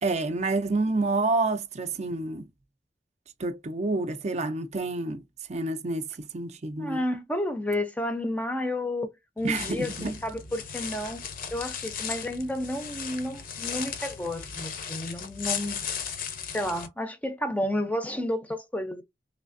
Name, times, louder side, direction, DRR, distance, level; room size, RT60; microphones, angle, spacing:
voice 1, 0.0-2.5 3.4-5.2 5.5-6.1 6.3-7.0 9.4-10.1, right 3 dB, 40° right, 0.5 m, -28 dB
voice 2, 6.8-11.2 11.5-15.8 16.5-19.0, left 1 dB, 10° left, 0.5 m, -31 dB
sound 1, 9.4-16.9, left 7 dB, 50° left, 0.6 m, -36 dB
3.2 x 3.2 x 2.6 m
head